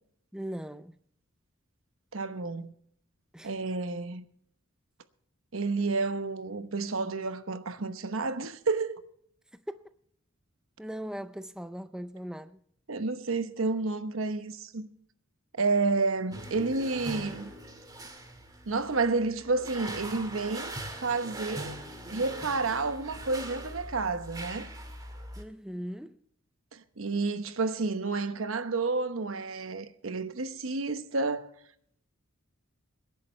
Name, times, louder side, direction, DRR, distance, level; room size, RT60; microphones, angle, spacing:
voice 1, 0.3-1.0 3.3-3.6 9.5-9.9 10.8-12.6 25.4-26.2, equal, 5° right, 0.5 m, -39 dB
voice 2, 2.1-2.7 3.4-4.2 5.5-9.0 12.9-14.9 15.6-17.5 18.7-20.7 21.0-21.8 22.1-24.7 26.7-31.5, right 3 dB, 80° right, 1.0 m, -30 dB
sound 1, 16.3-25.4, right 1 dB, 20° right, 1.9 m, -42 dB
25.5 x 10.5 x 3.2 m
head